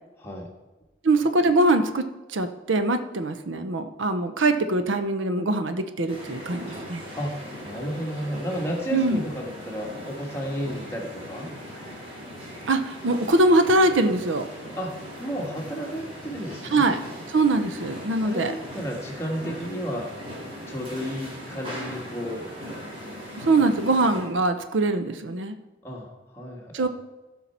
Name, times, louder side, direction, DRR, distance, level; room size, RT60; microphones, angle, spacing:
voice 1, 1.0-7.0 8.9-9.2 12.7-14.5 16.7-17.0 17.3-18.5 23.3-25.6 26.7-26.9, right 2 dB, 85° right, 9 dB, 0.7 m, -22 dB
sound 1, 6.1-24.3, equal, 30° right, 2.2 m, -39 dB
voice 2, 7.6-11.5 14.7-16.8 18.2-20.1 20.7-22.5 25.8-26.1 26.3-26.9, equal, 15° left, -1 dB, 1.5 m, -32 dB
15.0 x 5.7 x 4.3 m, 1.1 s
head